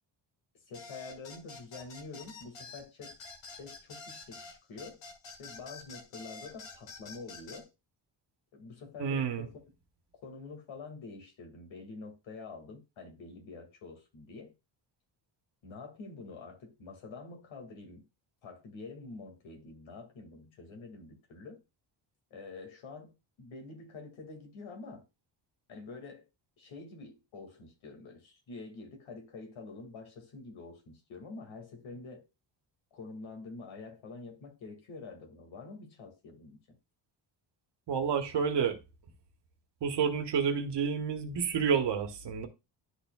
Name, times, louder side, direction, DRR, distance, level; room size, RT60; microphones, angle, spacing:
voice 1, 0.7-3.2 3.5-5.0 5.4-7.7 8.5-9.6 10.2-14.5 15.6-18.0 18.4-21.6 22.3-25.0 25.7-26.3 26.6-32.3 32.9-36.6, left 3 dB, 85° left, 2.2 m, -47 dB
sound 1, 0.7-7.6, left 4 dB, 70° left, 1.8 m, -48 dB
voice 2, 9.0-9.5 37.9-38.8 39.8-42.5, right 6 dB, 60° right, 1.2 m, -29 dB
11.5 x 4.4 x 2.3 m
wide cardioid pair, 165°, 46 cm